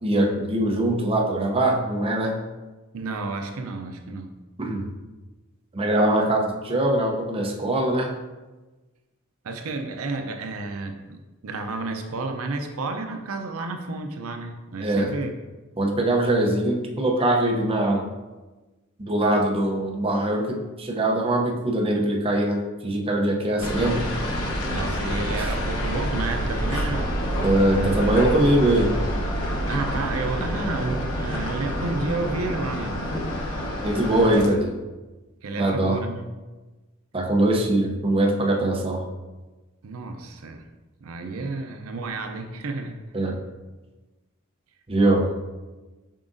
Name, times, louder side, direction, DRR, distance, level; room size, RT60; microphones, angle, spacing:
voice 1, 0.0-2.4 4.6-4.9 5.7-8.2 14.8-15.1 15.8-18.1 19.0-24.0 25.4-25.5 27.4-29.0 33.8-34.7 35.6-36.0 37.1-39.0 43.1-43.4 44.9-45.3, right 1 dB, 25° right, 0 dB, 0.7 m, -22 dB
voice 2, 2.9-4.3 9.4-15.3 24.7-27.1 27.7-28.0 29.7-33.0 35.4-36.3 39.8-40.6 41.0-43.0 45.1-45.3, right 3 dB, 75° right, 5 dB, 0.6 m, -31 dB
sound 1, 23.6-34.5, equal, 80° left, 1.0 m, -27 dB
7.4 x 4.9 x 2.6 m, 1.2 s
head